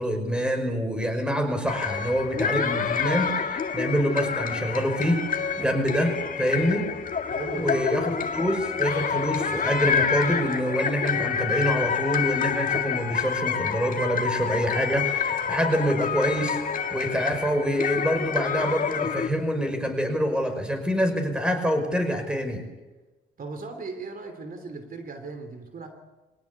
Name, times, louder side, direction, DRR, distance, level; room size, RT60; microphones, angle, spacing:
voice 1, 0.0-5.3 5.6-6.9 7.5-16.6 16.9-22.6, equal, 5° right, 6 dB, 5.6 m, -26 dB
sound 1, 1.7-19.3, left 6 dB, 45° left, 2.0 m, -28 dB
voice 2, 7.3-8.0 23.4-25.9, right 4 dB, 45° right, 6 dB, 3.1 m, -37 dB
24.0 x 17.5 x 8.5 m, 1.2 s
cardioid pair, 90°, 20 cm